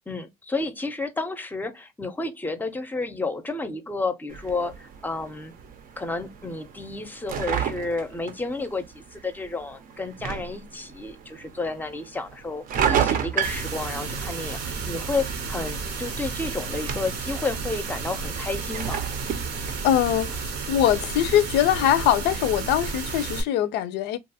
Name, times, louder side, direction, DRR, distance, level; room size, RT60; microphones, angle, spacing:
voice 1, 0.1-5.5 6.0-19.0, left 3 dB, 10° left, 0.5 m, -31 dB
sound 1, 4.3-22.9, right 8 dB, 55° right, 0.5 m, -34 dB
sound 2, 13.4-23.4, right 4 dB, 90° right, 0.7 m, -32 dB
voice 2, 19.8-24.2, left 11 dB, 85° left, 0.4 m, -22 dB
2.8 x 2.3 x 2.6 m
cardioid pair, 110°, 17 cm